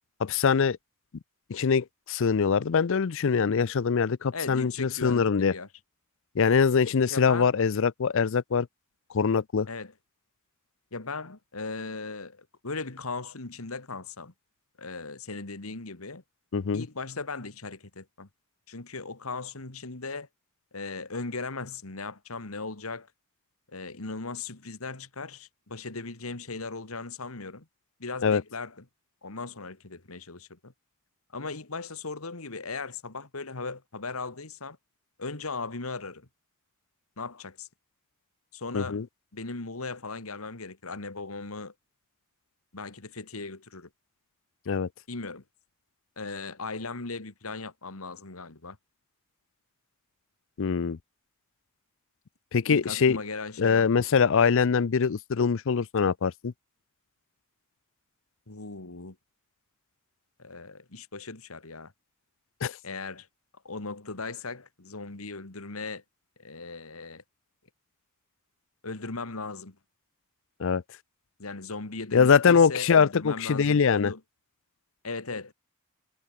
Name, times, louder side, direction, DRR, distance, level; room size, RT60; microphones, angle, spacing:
voice 1, 0.2-0.8 1.5-5.5 6.4-8.7 9.1-9.7 16.5-16.8 28.2-28.4 38.7-39.1 44.7-44.9 50.6-51.0 52.5-53.2 53.6-56.5 62.6-62.7 70.6-70.8 72.1-74.1, left 6 dB, 65° left, 0.5 m, -23 dB
voice 2, 4.3-5.7 7.1-7.5 9.7-9.9 10.9-14.3 14.8-16.2 16.7-18.3 18.7-20.3 20.7-23.1 23.7-27.7 28.0-28.8 29.2-30.7 31.3-34.8 35.2-36.3 37.2-37.7 38.5-39.0 39.3-41.7 42.7-43.9 45.1-45.4 46.2-48.8 52.7-53.8 58.5-59.2 60.4-61.9 62.8-63.3 63.6-66.0 66.4-67.2 68.8-69.8 71.4-74.2 75.0-75.5, left 3 dB, 85° left, 2.1 m, -38 dB
head